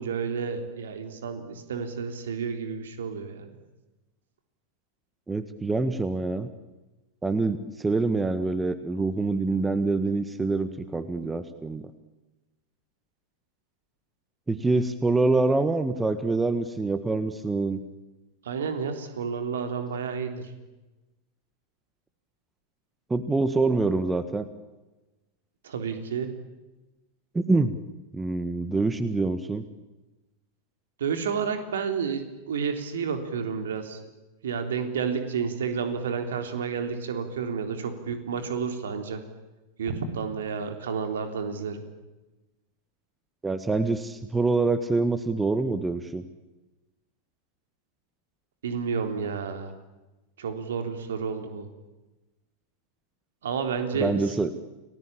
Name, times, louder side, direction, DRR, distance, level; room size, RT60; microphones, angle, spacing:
voice 1, 0.0-3.5 18.4-20.5 25.6-26.3 31.0-34.0 34.4-39.2 39.8-41.8 48.6-49.8 50.4-51.7 53.4-54.5, right 6 dB, 60° right, 7 dB, 3.6 m, -30 dB
voice 2, 5.3-6.5 7.2-11.8 14.5-17.8 23.1-24.5 27.3-27.8 28.1-29.6 43.4-46.2 54.0-54.5, right 3 dB, 10° right, 12 dB, 1.5 m, -25 dB
30.0 x 19.5 x 8.8 m, 1.1 s
figure-of-eight pair, 90°, 0 cm